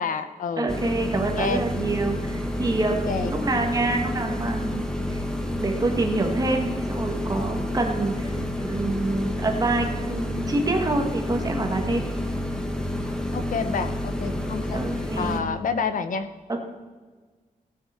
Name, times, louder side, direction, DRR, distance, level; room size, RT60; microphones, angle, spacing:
voice 1, 0.0-0.7 1.3-1.6 3.1-3.3 13.3-16.3, left 5 dB, 65° left, 10 dB, 0.8 m, -29 dB
voice 2, 0.6-4.9 5.1-5.2 5.6-12.0 14.7-15.4 16.5-16.6, right 2 dB, 25° right, 3 dB, 1.6 m, -26 dB
sound 1, 0.7-15.4, left 1 dB, 5° left, 1.2 m, -29 dB
18.0 x 9.4 x 4.3 m, 1.4 s
wide cardioid pair, 180°, 15 cm